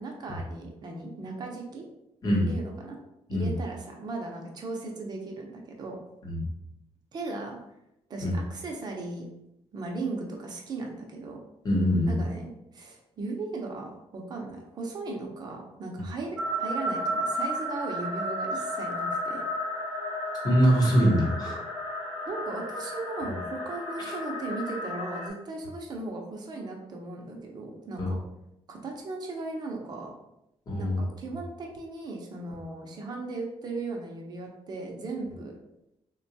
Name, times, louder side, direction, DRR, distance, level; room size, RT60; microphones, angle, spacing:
voice 1, 0.0-1.8 2.5-3.0 3.3-6.0 7.1-7.6 8.1-9.2 9.7-11.4 12.1-19.4 22.3-28.2 28.7-30.1 30.8-35.6, right 3 dB, 40° right, 1 dB, 0.6 m, -37 dB
voice 2, 11.6-12.2 20.4-21.6 28.0-28.1 30.7-31.0, equal, 35° left, -2 dB, 0.9 m, -23 dB
sound 1, 16.4-25.3, equal, ahead, 0.6 m, -33 dB
3.7 x 2.2 x 2.7 m, 0.86 s
wide cardioid pair, 175°, 11 cm